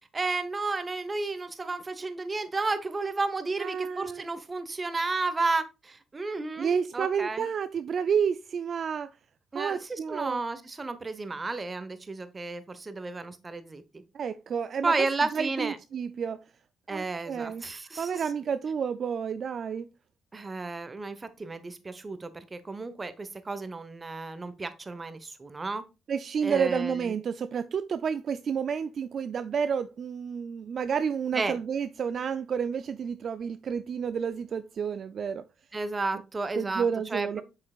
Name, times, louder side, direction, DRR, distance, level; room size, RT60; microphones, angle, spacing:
voice 1, 0.1-7.5 9.5-13.8 14.8-15.8 16.9-18.2 20.3-25.8 26.4-27.1 31.3-31.6 35.7-37.4, right 3 dB, 25° right, 1.0 m, -32 dB
voice 2, 3.6-4.2 6.6-9.1 9.5-10.4 14.1-14.9 15.3-16.4 16.9-17.6 18.0-19.9 26.1-35.4 36.6-37.4, right 7 dB, 55° right, 0.4 m, -30 dB
7.9 x 5.6 x 2.4 m
cardioid pair, 90°, 0 cm